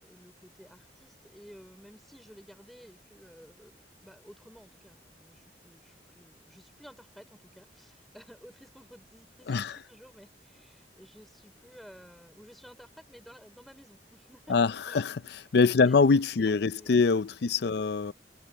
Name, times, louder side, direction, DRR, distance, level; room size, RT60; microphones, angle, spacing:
voice 1, 0.0-14.6 14.9-15.1 15.8-16.0 16.3-17.1, equal, ahead, 5.2 m, -53 dB
voice 2, 14.5-15.2 15.5-18.1, left 4 dB, 65° left, 0.5 m, -24 dB
head